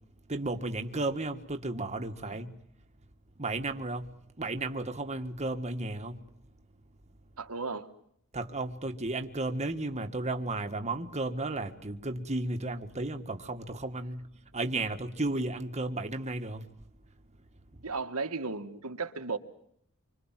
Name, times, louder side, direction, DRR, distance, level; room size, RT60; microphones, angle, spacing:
voice 1, 0.3-2.5 3.4-4.1 4.4-6.2 8.3-14.2 14.5-16.6, right 2 dB, 30° right, 1.7 m, -33 dB
voice 2, 7.4-7.9 17.8-19.4, right 4 dB, 80° right, 1.9 m, -35 dB
27.0 x 25.5 x 7.5 m
head